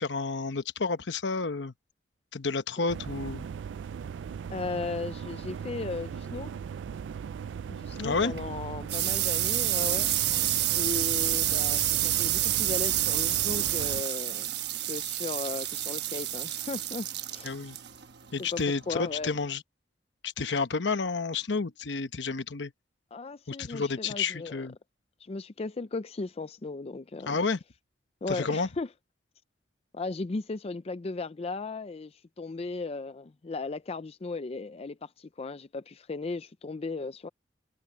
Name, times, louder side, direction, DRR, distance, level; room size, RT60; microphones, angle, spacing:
voice 1, 0.0-1.7 2.3-3.5 8.0-8.3 17.4-17.8 18.3-19.6 20.2-22.7 23.5-24.8 27.3-27.6 28.3-28.7, left 4 dB, 75° left, 1.0 m, -30 dB
sound 1, 2.9-14.0, right 7 dB, 85° right, 0.3 m, -38 dB
voice 2, 4.5-6.5 7.7-10.1 10.7-14.5 14.8-17.5 18.4-19.4 23.1-24.7 25.2-27.4 28.2-28.9 29.9-37.3, left 3 dB, 35° left, 0.5 m, -36 dB
sound 2, 8.3-19.5, right 14 dB, 65° right, 1.1 m, -29 dB
head